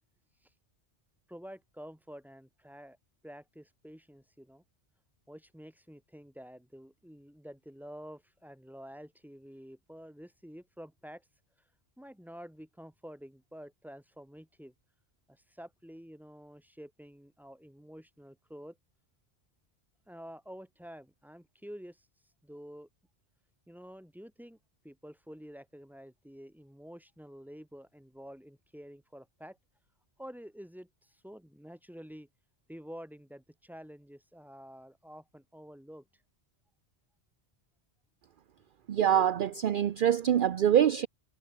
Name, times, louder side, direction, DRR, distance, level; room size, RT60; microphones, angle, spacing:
voice 1, 1.3-3.0 3.2-4.6 5.3-11.3 12.0-14.7 15.3-18.8 20.1-22.1 22.4-22.9 23.7-24.6 24.8-29.6 30.2-32.3 32.7-36.1, equal, ahead, 3.2 m, -49 dB
voice 2, 38.9-41.1, right 10 dB, 55° right, 0.8 m, -25 dB
omnidirectional pair, 1.1 m